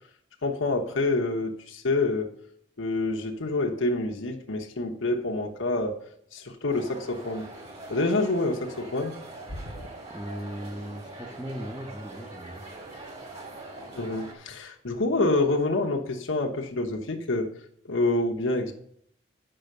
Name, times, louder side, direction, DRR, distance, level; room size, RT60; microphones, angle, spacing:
voice 1, 0.4-2.3 2.8-6.0 6.3-7.5 7.9-9.1 9.5-9.6 13.9-17.5 17.8-18.7, left 2 dB, 80° left, 1 dB, 1.1 m, -27 dB
sound 1, 6.7-14.3, right 2 dB, 30° right, 2.2 m, -43 dB
voice 2, 10.1-12.6, equal, 5° right, 5 dB, 0.8 m, -38 dB
8.9 x 5.6 x 6.6 m, 0.70 s
head